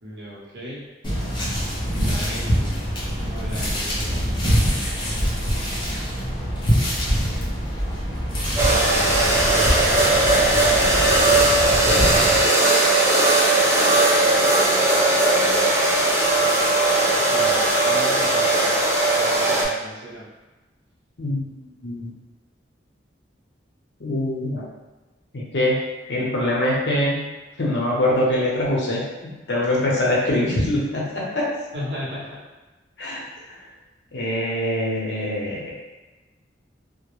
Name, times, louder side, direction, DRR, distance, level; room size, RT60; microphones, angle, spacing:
voice 1, 0.0-0.8 2.0-2.7 3.2-4.2 17.3-18.8 19.2-20.3 31.7-32.4, equal, 75° right, -7 dB, 0.9 m, -36 dB
sound 1, 1.0-12.4, equal, 25° left, 0.6 m, -24 dB
sound 2, 8.6-19.7, right 2 dB, 15° right, 0.3 m, -18 dB
voice 2, 21.2-22.1 24.0-24.6 25.3-25.8 26.1-27.3 27.6-29.0 29.5-31.5 33.0-33.3 34.1-35.7, left 1 dB, 70° left, -4 dB, 0.7 m, -23 dB
2.2 x 2.1 x 3.0 m, 1.2 s
head